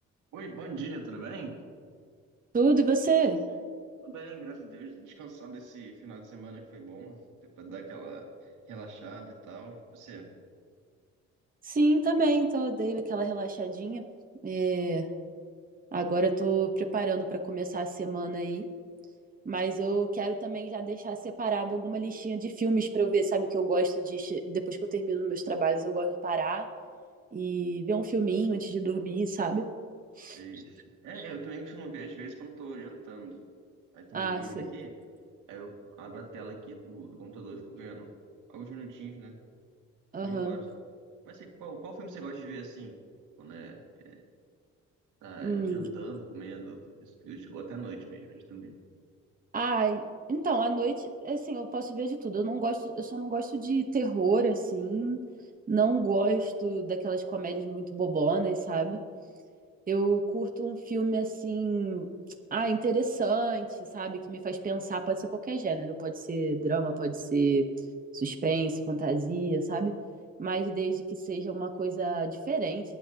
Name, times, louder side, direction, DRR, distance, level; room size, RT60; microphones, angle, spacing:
voice 1, 0.3-1.6 4.0-10.3 30.3-33.4 33.9-34.9 35.5-38.1 38.5-39.4 40.2-40.7 41.2-43.0 43.4-44.2 45.2-48.8, right 4 dB, 80° right, 0 dB, 2.4 m, -43 dB
voice 2, 2.5-3.4 11.6-14.0 14.4-15.1 15.9-18.6 19.4-26.6 27.3-29.6 30.2-30.6 34.1-34.7 40.1-40.5 45.4-45.9 49.5-50.0 50.3-55.2 55.7-59.0 59.9-62.1 62.5-63.7 63.9-67.7 68.1-69.9 70.4-72.8, right 3 dB, 30° right, 3 dB, 1.1 m, -29 dB
24.0 x 9.3 x 3.0 m, 2.1 s
cardioid pair, 90°, 30 cm